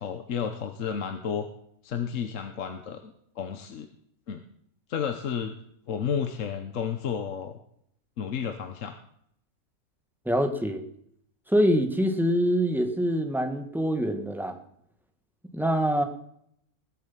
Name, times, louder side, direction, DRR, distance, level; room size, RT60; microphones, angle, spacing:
voice 1, 0.0-1.5 1.8-3.9 4.3-4.4 4.9-5.5 5.9-7.5 8.2-8.9, left 7 dB, 60° left, 7 dB, 1.2 m, -32 dB
voice 2, 10.2-10.8 11.5-14.6 15.5-16.0, equal, ahead, 5 dB, 1.4 m, -25 dB
20.5 x 7.8 x 5.6 m, 0.70 s
omnidirectional pair, 1.6 m